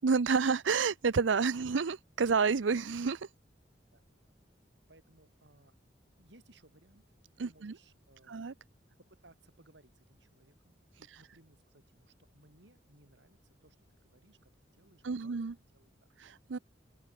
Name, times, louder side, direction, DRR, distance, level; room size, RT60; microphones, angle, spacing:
voice 1, 0.0-3.3 7.4-7.7 8.3-8.5 11.1-11.2 15.0-15.5 16.2-16.6, right 5 dB, 90° right, 0.6 m, -30 dB
voice 2, 4.9-5.7 6.2-7.0 7.4-8.4 9.0-16.1, right 2 dB, 70° right, 4.8 m, -63 dB
open air
head